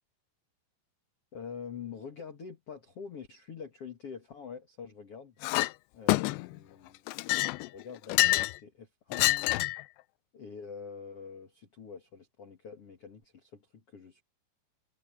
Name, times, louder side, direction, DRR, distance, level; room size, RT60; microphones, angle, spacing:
voice 1, 1.3-5.4 5.9-7.0 7.7-9.5 10.3-14.2, left 6 dB, 45° left, 2.0 m, -45 dB
Chink clink, 5.4-5.7 6.1-6.6 7.1-8.6 9.1-9.8, left 20 dB, 85° left, 2.5 m, -27 dB
omnidirectional pair, 5.6 m